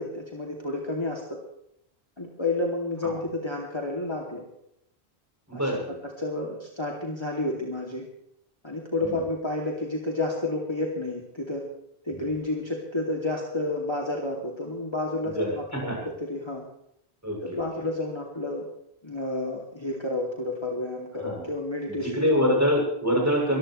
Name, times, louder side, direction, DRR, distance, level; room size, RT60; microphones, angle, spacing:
voice 1, 0.0-1.4 2.2-4.5 5.5-8.0 8.6-11.6 12.0-16.6 17.4-18.7 19.0-22.5, left 2 dB, 25° left, -1 dB, 2.6 m, -30 dB
voice 2, 5.5-6.0 9.0-9.2 12.1-12.2 15.3-16.0 17.2-17.6 21.2-21.4 21.9-23.6, equal, 15° right, -1 dB, 7.4 m, -26 dB
23.0 x 15.5 x 3.2 m, 0.75 s
omnidirectional pair, 1.1 m